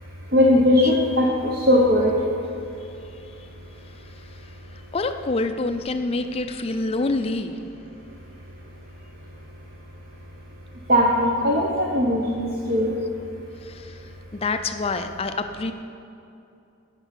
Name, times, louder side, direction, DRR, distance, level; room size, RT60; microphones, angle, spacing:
voice 1, 0.3-2.1 10.9-12.9, left 1 dB, 45° right, -1 dB, 0.8 m, -19 dB
voice 2, 3.8-7.6 13.6-15.7, left 3 dB, 25° left, 8 dB, 0.4 m, -28 dB
9.8 x 5.5 x 8.2 m, 2.7 s
head